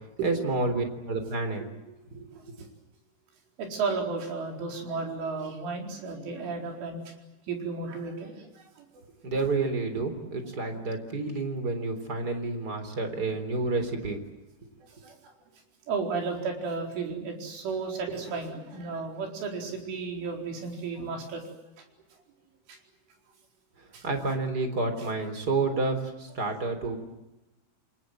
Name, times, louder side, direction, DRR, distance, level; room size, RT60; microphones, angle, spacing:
voice 1, 0.2-1.7 2.1-2.7 9.2-14.2 24.0-27.0, right 3 dB, 25° right, 8 dB, 3.5 m, -29 dB
voice 2, 2.3-2.7 3.6-7.2 7.5-9.0 14.9-15.3 15.9-21.5 22.7-22.8 23.9-24.4 26.7-26.8, right 4 dB, 85° right, 2 dB, 6.9 m, -34 dB
28.5 x 24.5 x 7.8 m, 1.0 s
omnidirectional pair, 5.4 m